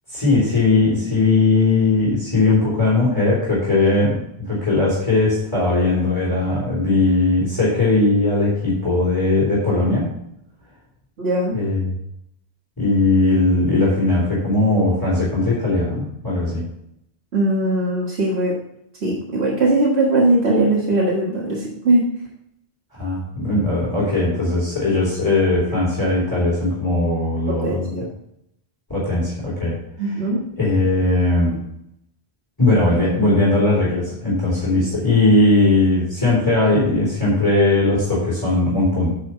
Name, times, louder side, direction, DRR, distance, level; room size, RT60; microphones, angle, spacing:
voice 1, 0.1-10.1 11.5-11.9 12.8-16.7 22.9-27.9 28.9-30.2 30.6-31.6 32.6-39.1, left 2 dB, 20° left, -7 dB, 3.6 m, -19 dB
voice 2, 11.2-11.6 17.3-18.5 19.0-22.1 27.6-28.0 30.0-30.4, right 2 dB, 75° right, -4 dB, 1.9 m, -19 dB
9.3 x 5.6 x 5.5 m, 0.77 s
omnidirectional pair, 1.1 m